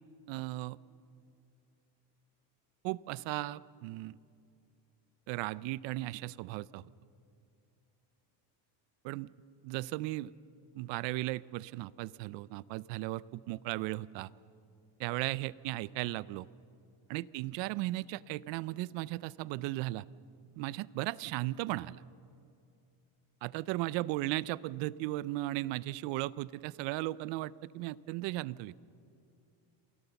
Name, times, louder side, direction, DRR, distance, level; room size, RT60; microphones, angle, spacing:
voice 1, 0.3-0.8 2.8-4.2 5.3-6.9 9.0-9.3 9.6-10.3 10.7-14.3 15.0-16.5 17.1-20.0 20.5-22.0 23.4-28.7, right 18 dB, 70° right, 20 dB, 0.6 m, -36 dB
27.5 x 16.0 x 7.0 m, 2.5 s
cardioid pair, 165°, 46 cm